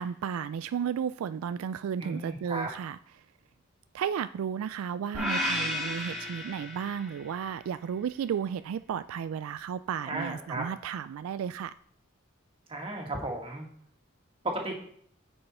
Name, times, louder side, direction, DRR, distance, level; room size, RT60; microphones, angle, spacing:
voice 1, 0.0-3.0 3.9-11.7, right 8 dB, 80° right, 14 dB, 0.3 m, -33 dB
voice 2, 2.0-2.7 10.1-10.7 12.7-13.6 14.4-14.7, right 2 dB, 25° right, 1 dB, 1.8 m, -34 dB
sound 1, 5.1-7.4, left 1 dB, ahead, 2.0 m, -33 dB
9.8 x 5.5 x 4.3 m, 0.63 s
head